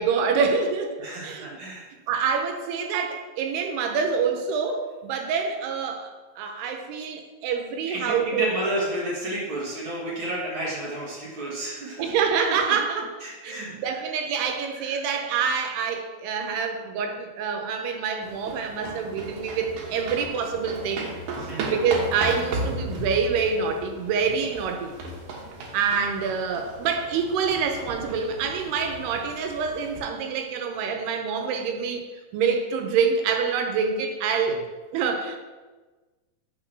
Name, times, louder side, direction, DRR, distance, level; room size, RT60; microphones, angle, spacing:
voice 1, 0.0-0.9 1.2-1.6 2.1-6.1 6.4-8.5 12.0-13.1 13.4-21.1 21.7-25.0 25.7-32.0 32.3-34.6 34.9-35.4, right 6 dB, 85° right, 4 dB, 2.9 m, -26 dB
voice 2, 1.0-1.8 7.9-12.1 12.7-12.8 13.2-14.0 14.7-15.0 21.3-21.7, right 1 dB, 45° right, -4 dB, 1.7 m, -32 dB
sound 1, 18.2-30.0, right 2 dB, 70° right, 2.6 m, -36 dB
6.0 x 5.9 x 6.0 m, 1.3 s
omnidirectional pair, 4.6 m